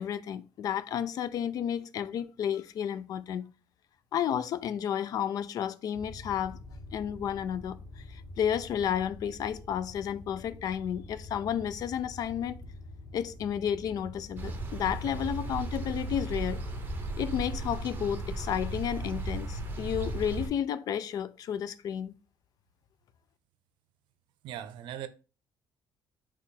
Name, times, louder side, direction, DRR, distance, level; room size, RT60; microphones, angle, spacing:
voice 1, 0.0-3.4 4.1-6.6 6.9-7.8 8.1-12.6 13.1-16.6 17.2-22.1, left 9 dB, 50° left, 0.4 m, -32 dB
sound 1, 5.9-20.2, left 1 dB, 80° left, 1.0 m, -47 dB
sound 2, 14.4-20.5, right 2 dB, 25° right, 0.8 m, -36 dB
voice 2, 24.4-25.1, right 11 dB, 75° right, 0.6 m, -39 dB
4.1 x 3.0 x 4.1 m
cardioid pair, 160°, 8 cm